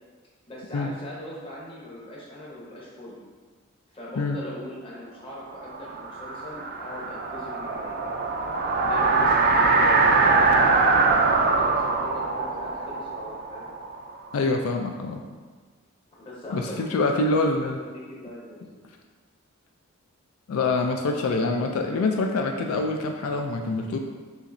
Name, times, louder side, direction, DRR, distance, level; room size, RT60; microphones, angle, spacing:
voice 1, 0.5-3.2 3.9-13.7 16.2-19.0, left 1 dB, 25° left, -5 dB, 1.0 m, -40 dB
sound 1, 5.6-14.3, right 3 dB, 45° right, 0.3 m, -22 dB
voice 2, 14.3-15.2 16.5-17.8 20.5-24.0, left 3 dB, 85° left, 3 dB, 0.4 m, -25 dB
5.5 x 3.1 x 2.5 m, 1.5 s
head